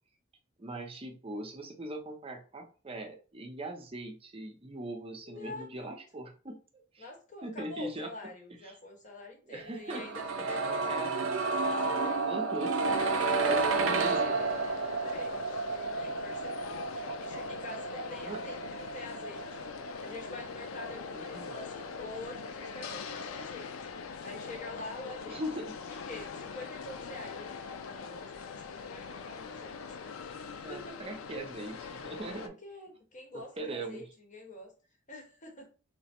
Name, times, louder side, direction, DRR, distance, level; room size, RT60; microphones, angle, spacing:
voice 1, 0.6-7.1 7.4-8.1 8.6-8.8 9.5-10.1 10.4-11.1 12.2-12.7 13.3-14.5 18.2-18.4 21.1-21.5 25.3-25.7 30.5-32.5 33.6-34.0, right 1 dB, 30° right, 3 dB, 0.5 m, -40 dB
voice 2, 5.2-6.0 7.0-10.9 12.0-12.3 12.6-12.7 15.0-15.4 15.7-16.8 17.2-19.5 20.0-23.7 24.2-25.4 25.9-31.0 32.4-34.7 35.1-35.7, left 2 dB, 40° left, 1 dB, 1.0 m, -46 dB
sound 1, 9.9-21.7 22.0-22.1, right 4 dB, 80° right, 0.5 m, -31 dB
sound 2, 12.9-32.5, left 5 dB, 90° left, 0.4 m, -42 dB
3.2 x 2.0 x 4.2 m, 0.37 s
head